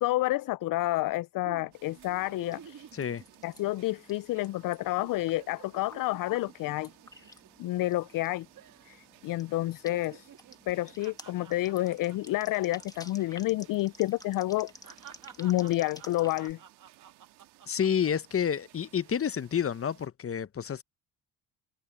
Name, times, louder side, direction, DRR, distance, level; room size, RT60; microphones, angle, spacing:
voice 1, 0.0-2.9 3.4-6.9 7.6-8.5 8.9-10.3 10.7-14.7 15.4-16.6, left 17 dB, 55° left, 0.5 m, -29 dB
sound 1, 1.4-4.0 4.3-4.5 4.8-8.2 8.6-9.0 9.3-13.4 13.6-13.8 14.3-18.3 18.8-19.3, right 9 dB, 50° right, 1.8 m, -53 dB
sound 2, 1.7-20.1, right 19 dB, 85° right, 2.2 m, -60 dB
sound 3, 2.1-16.5, left 2 dB, 10° left, 1.6 m, -54 dB
voice 2, 2.9-3.2 17.7-20.8, left 8 dB, 35° left, 1.0 m, -29 dB
supercardioid pair, 65°, 40 cm